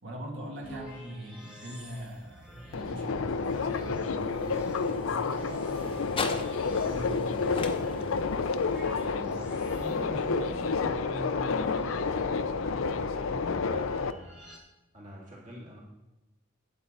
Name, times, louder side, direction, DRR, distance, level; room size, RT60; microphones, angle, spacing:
voice 1, 0.0-9.7, equal, 65° right, -1 dB, 2.3 m, -43 dB
sound 1, 0.6-14.6, equal, 5° right, 1.5 m, -48 dB
Subway metro underground, 2.7-14.1, left 4 dB, 90° left, 0.5 m, -30 dB
sound 2, 3.3-11.4, left 4 dB, 25° left, 0.8 m, -43 dB
voice 2, 9.8-14.4 14.9-15.8, equal, 40° right, -3 dB, 2.0 m, -44 dB
11.5 x 8.5 x 4.1 m, 0.99 s
head